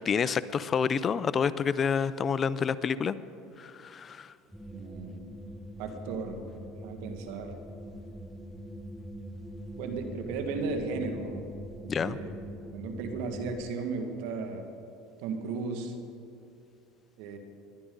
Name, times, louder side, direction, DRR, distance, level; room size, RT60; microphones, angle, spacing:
voice 1, 0.0-3.2 3.6-4.3 11.9-12.2, left 6 dB, 35° left, 16 dB, 0.5 m, -28 dB
sound 1, 4.5-13.7, equal, ahead, 0.9 m, -43 dB
voice 2, 4.7-5.2 5.8-6.4 6.7-7.5 9.8-11.4 12.0-12.3 12.7-14.7 15.2-15.9 17.2-17.4, right 4 dB, 75° right, 5 dB, 1.7 m, -35 dB
20.5 x 11.0 x 3.9 m, 2.6 s
supercardioid pair, 100°, 0 cm